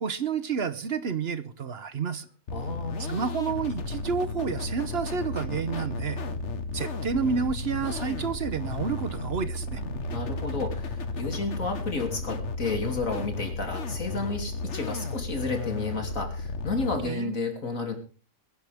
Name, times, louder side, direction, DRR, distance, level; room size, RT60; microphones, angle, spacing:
voice 1, 0.0-2.3 3.1-6.2 6.7-9.8 17.0-17.4, right 6 dB, 50° right, 1.1 m, -30 dB
voice 2, 2.5-3.2 10.1-17.9, left 3 dB, 85° left, 3.4 m, -32 dB
sound 1, 2.5-17.0, left 3 dB, 60° left, 1.6 m, -33 dB
22.0 x 10.5 x 3.5 m
omnidirectional pair, 1.4 m